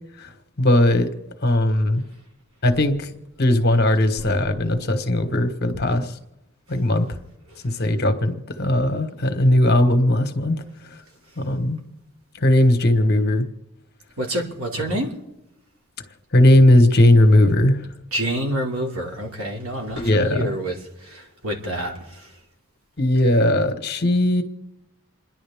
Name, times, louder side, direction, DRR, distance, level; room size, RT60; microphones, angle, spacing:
voice 1, 0.6-1.1 1.4-2.0 2.6-3.1 3.4-6.1 6.7-7.0 7.6-10.6 11.4-11.8 12.4-13.5 14.9-15.0 16.3-17.9 20.0-20.5 23.0-24.4, left 1 dB, 50° left, 7 dB, 1.4 m, -18 dB
voice 2, 4.2-4.6 5.7-5.8 14.2-15.2 18.1-22.3, right 1 dB, 90° right, 1 dB, 2.8 m, -28 dB
28.5 x 11.0 x 3.6 m, 0.92 s
head